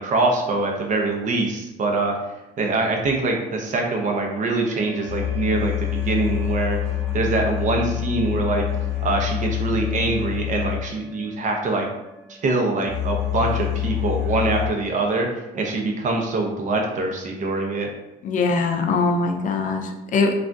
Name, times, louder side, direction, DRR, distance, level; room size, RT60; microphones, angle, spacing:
voice 1, 0.0-2.1 2.6-6.8 7.1-8.6 9.0-11.9 12.3-17.9, right 3 dB, 45° right, 1 dB, 0.6 m, -24 dB
sound 1, 3.0-3.1 4.7-14.7, left 12 dB, 5° left, 1.3 m, -27 dB
voice 2, 18.2-20.3, left 4 dB, 50° left, 4 dB, 0.4 m, -22 dB
3.4 x 2.3 x 2.5 m, 0.95 s
cardioid pair, 110°, 17 cm